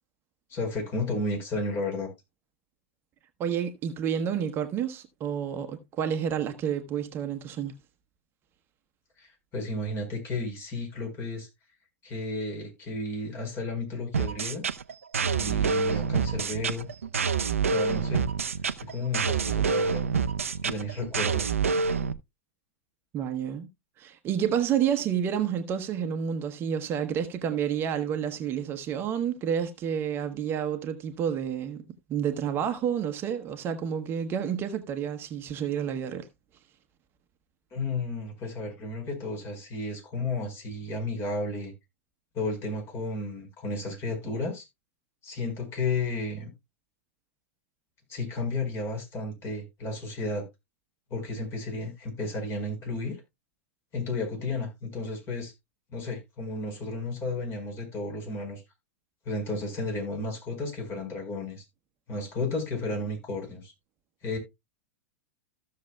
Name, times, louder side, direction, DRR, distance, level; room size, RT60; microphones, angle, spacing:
voice 1, 0.5-2.1 9.2-11.5 12.0-14.7 15.3-16.9 17.7-18.3 18.9-20.0 20.6-21.4 37.7-41.7 42.3-44.6 45.2-46.5 48.1-50.4 51.1-53.2 53.9-55.5 55.9-58.6 59.2-61.6 62.1-63.7 64.2-64.4, left 2 dB, 35° left, 4.7 m, -33 dB
voice 2, 3.4-7.7 23.1-23.7 24.0-31.8 32.1-36.3, right 8 dB, 30° right, 1.0 m, -29 dB
sound 1, 14.1-22.1, right 5 dB, 75° right, 0.6 m, -27 dB
15.0 x 6.7 x 2.2 m
figure-of-eight pair, 95°, 7 cm